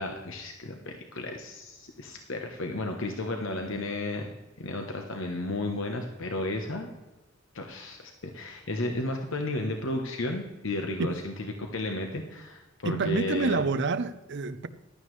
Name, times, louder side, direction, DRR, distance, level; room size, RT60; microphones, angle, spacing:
voice 1, 0.0-4.3 4.6-6.9 7.5-13.6, left 2 dB, 65° left, 1.1 m, -33 dB
voice 2, 12.8-14.7, right 3 dB, 60° right, 0.6 m, -28 dB
15.0 x 11.5 x 3.3 m
head